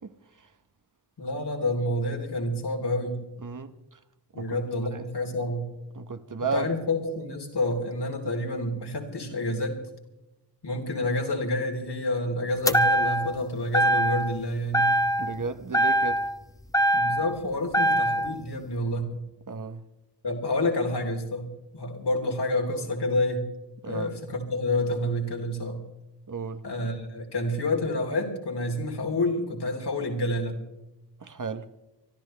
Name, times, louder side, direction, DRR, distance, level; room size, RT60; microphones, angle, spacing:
voice 1, 1.2-3.3 4.3-5.7 6.4-9.8 10.6-14.9 16.9-19.2 20.2-23.5 23.9-25.8 26.6-30.6, left 1 dB, 70° left, 3.6 m, -28 dB
voice 2, 3.4-4.0 4.4-4.6 4.9-5.1 5.9-6.7 15.2-16.2 19.5-19.8 23.8-24.1 26.3-26.6 31.2-31.7, right 4 dB, 45° right, 1.1 m, -34 dB
sound 1, 12.7-13.4 13.7-14.4 14.7-15.4 15.7-17.4 17.7-18.4, right 1 dB, 10° left, 1.1 m, -23 dB
25.0 x 13.5 x 3.3 m
wide cardioid pair, 95°, 42 cm